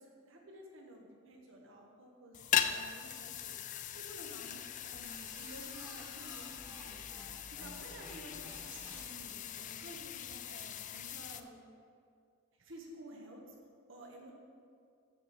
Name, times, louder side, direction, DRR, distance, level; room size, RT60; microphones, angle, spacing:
voice 1, 0.0-7.0 7.5-11.6 12.6-13.4 13.9-14.3, right 1 dB, 60° right, 0 dB, 1.4 m, -52 dB
sound 1, 2.3-11.4, left 9 dB, 35° left, 0.3 m, -40 dB
sound 2, 5.0-9.4, equal, 10° right, 1.6 m, -53 dB
12.0 x 5.2 x 4.2 m, 2.3 s
head